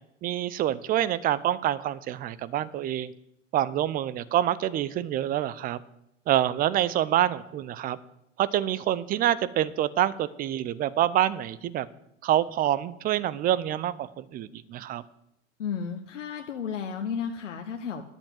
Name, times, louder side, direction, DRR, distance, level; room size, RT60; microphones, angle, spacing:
voice 1, 0.2-3.1 3.5-5.8 6.3-8.0 8.4-11.9 12.2-15.0, right 12 dB, 25° right, 17 dB, 0.6 m, -26 dB
voice 2, 15.6-18.0, left 7 dB, 75° left, 4 dB, 1.1 m, -33 dB
10.5 x 7.2 x 7.7 m, 0.77 s
figure-of-eight pair, 95°, 37 cm